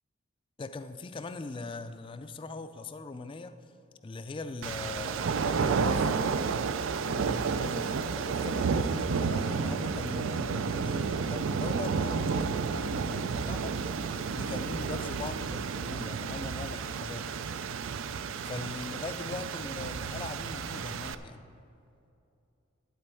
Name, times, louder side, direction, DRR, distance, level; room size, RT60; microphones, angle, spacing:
voice 1, 0.6-3.6 4.0-6.1 7.0-13.8 14.3-17.5 18.4-21.4, left 3 dB, 25° left, 9 dB, 0.3 m, -41 dB
sound 1, 4.6-21.1, right 5 dB, 70° right, 0.4 m, -31 dB
12.0 x 4.5 x 8.3 m, 2.6 s
head